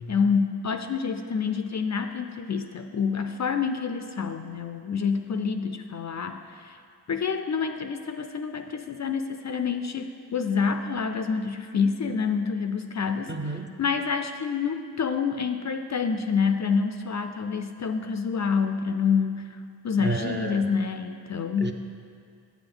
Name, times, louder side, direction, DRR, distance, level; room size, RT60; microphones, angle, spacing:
voice 1, 0.1-6.8 7.1-13.3 13.8-19.6 19.8-21.7, left 5 dB, 45° left, 7 dB, 0.4 m, -27 dB
voice 2, 13.3-13.7 20.0-20.7 21.6-21.7, right 3 dB, 25° right, 4 dB, 0.6 m, -31 dB
8.3 x 7.0 x 3.8 m, 2.2 s
cardioid pair, 55°, 41 cm